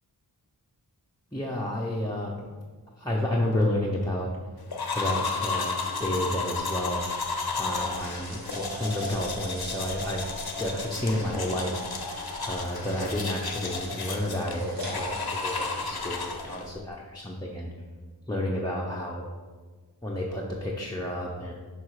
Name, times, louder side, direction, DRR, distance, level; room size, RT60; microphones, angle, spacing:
voice 1, 1.3-2.5 3.0-4.6 4.9-7.0 7.5-10.2 10.6-12.1 12.4-17.7 18.3-19.2 20.0-21.5, left 1 dB, 10° left, -4 dB, 0.9 m, -31 dB
sound 1, 4.7-16.7, left 4 dB, 65° left, 0.9 m, -33 dB
sound 2, 6.9-16.9, right 1 dB, 90° right, 1.4 m, -44 dB
5.5 x 5.4 x 4.9 m, 1.5 s
wide cardioid pair, 45°, 41 cm